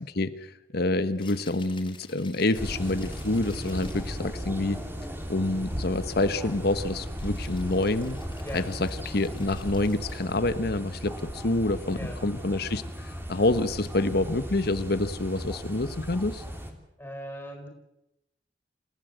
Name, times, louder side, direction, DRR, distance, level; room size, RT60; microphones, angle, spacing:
voice 1, 0.1-4.8 5.3-8.2 8.5-8.6 9.1-16.4, left 2 dB, 60° left, 12 dB, 1.2 m, -27 dB
Rattle (instrument), 1.1-4.2 7.2-10.4, left 5 dB, 30° left, 3.7 m, -52 dB
sound 1, 2.5-16.7, equal, 15° right, 3.0 m, -37 dB
voice 2, 17.0-17.7, equal, 10° left, 2 dB, 4.4 m, -39 dB
28.0 x 15.5 x 8.1 m, 0.88 s
head